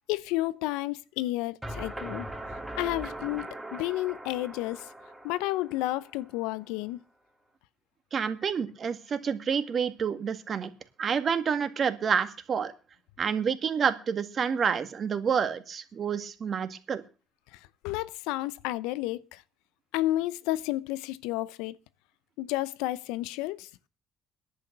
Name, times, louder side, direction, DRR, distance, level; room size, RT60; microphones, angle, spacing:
voice 1, 0.1-2.3 2.8-4.9 5.2-7.0 17.5-19.4 19.9-21.8 22.4-23.7, left 16 dB, 80° left, 0.6 m, -31 dB
sound 1, 1.6-6.5, right 1 dB, 5° right, 3.7 m, -40 dB
voice 2, 8.1-10.7 11.0-12.7 13.2-17.0, right 6 dB, 50° right, 1.9 m, -28 dB
11.0 x 8.4 x 7.9 m
hypercardioid pair, 60°, 0 cm